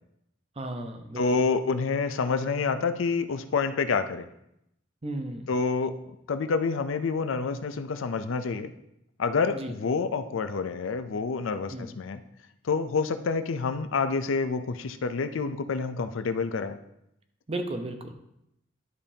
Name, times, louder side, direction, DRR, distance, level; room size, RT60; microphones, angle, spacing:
voice 1, 0.6-1.2 5.0-5.5 9.5-9.7 11.7-11.9 17.5-18.1, right 1 dB, 30° right, 6 dB, 0.7 m, -34 dB
voice 2, 1.2-4.3 5.5-8.7 9.2-12.2 12.6-16.8, left 4 dB, 75° left, 10 dB, 0.5 m, -28 dB
11.5 x 5.1 x 2.8 m, 0.80 s
head